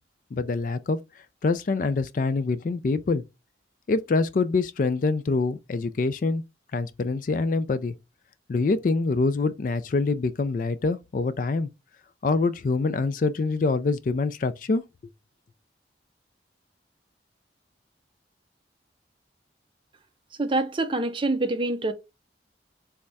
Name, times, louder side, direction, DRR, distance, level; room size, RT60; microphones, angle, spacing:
voice 1, 0.3-1.0 1.4-3.2 3.9-6.4 6.7-7.9 8.5-11.7 12.2-14.8, left 3 dB, 45° left, 0.3 m, -25 dB
voice 2, 20.4-21.9, right 2 dB, 30° right, 0.5 m, -25 dB
3.5 x 3.2 x 4.0 m
head